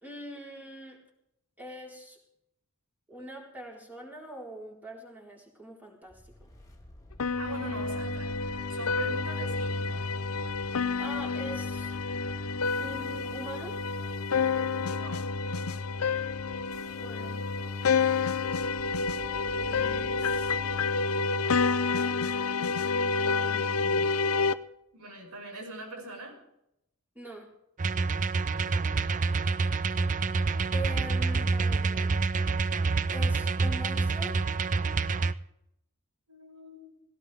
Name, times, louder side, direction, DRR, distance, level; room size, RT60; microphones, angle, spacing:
voice 1, 0.0-1.0 1.6-2.2 3.1-6.5 10.6-11.9 12.8-13.8 17.0-17.4 20.9-21.1 27.1-27.5 30.7-32.1 33.1-34.4, equal, 10° right, -3 dB, 4.1 m, -43 dB
sound 1, 6.1-24.2, left 1 dB, 15° left, 2.8 m, -53 dB
sound 2, 7.2-24.5, left 4 dB, 70° left, 0.7 m, -29 dB
voice 2, 7.4-8.3 8.7-10.0 14.7-15.2 18.8-20.5 23.5-24.2 24.9-26.4 28.5-28.9 36.3-37.0, right 2 dB, 85° right, 1 dB, 5.9 m, -43 dB
sound 3, 27.8-35.3, right 4 dB, 35° right, 0.5 m, -27 dB
18.0 x 17.5 x 3.5 m, 0.81 s
head